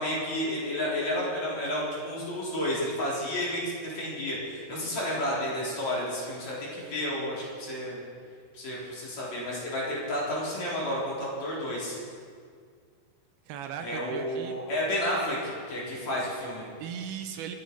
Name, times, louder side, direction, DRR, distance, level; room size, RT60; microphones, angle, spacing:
voice 1, 0.0-8.0 8.5-12.0 13.8-16.7, left 1 dB, 45° left, -6 dB, 4.9 m, -31 dB
voice 2, 13.5-14.6 16.8-17.6, right 8 dB, 75° right, 6 dB, 2.7 m, -38 dB
27.5 x 9.2 x 5.4 m, 2.1 s
omnidirectional pair, 4.6 m